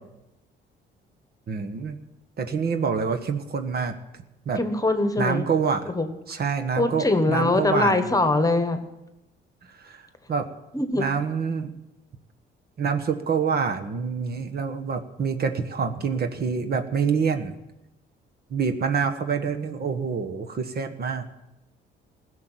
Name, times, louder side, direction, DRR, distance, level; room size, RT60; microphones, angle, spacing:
voice 1, 1.5-2.0 2.4-3.9 4.4-4.6 5.2-5.9 6.3-8.1 9.8-10.0 10.3-10.5 10.9-11.7 12.8-17.5 18.5-21.2, right 6 dB, 50° right, 7 dB, 1.3 m, -26 dB
voice 2, 4.6-5.5 5.9-6.1 6.7-8.8 10.7-11.0, left 2 dB, 15° left, 8 dB, 1.3 m, -22 dB
16.0 x 6.6 x 9.2 m, 0.94 s
cardioid pair, 90°, 20 cm